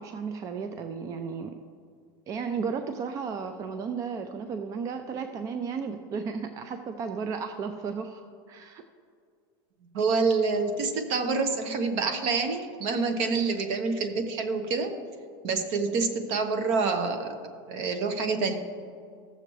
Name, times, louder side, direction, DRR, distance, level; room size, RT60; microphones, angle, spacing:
voice 1, 0.0-1.6 2.3-8.2 8.5-8.8, right 5 dB, 25° right, 8 dB, 0.4 m, -34 dB
voice 2, 9.9-15.0 15.4-17.4 17.7-18.6, right 4 dB, 55° right, 8 dB, 1.0 m, -27 dB
14.5 x 6.8 x 3.1 m, 2.3 s
supercardioid pair, 145°, 13 cm